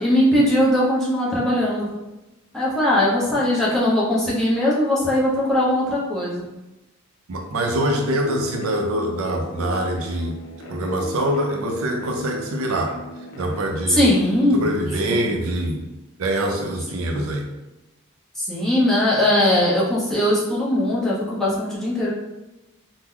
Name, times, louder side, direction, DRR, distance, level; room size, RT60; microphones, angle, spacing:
voice 1, 0.0-1.9 2.5-6.4 13.9-14.7 15.0-15.3 18.4-22.1, left 1 dB, ahead, -8 dB, 0.8 m, -20 dB
voice 2, 7.3-10.4 10.7-13.0 13.3-14.1 14.5-15.8 16.2-17.5, right 1 dB, 85° right, 3 dB, 0.5 m, -24 dB
sound 1, 8.2-13.7, equal, 70° left, 0.5 m, -37 dB
3.0 x 2.1 x 3.6 m, 0.99 s
head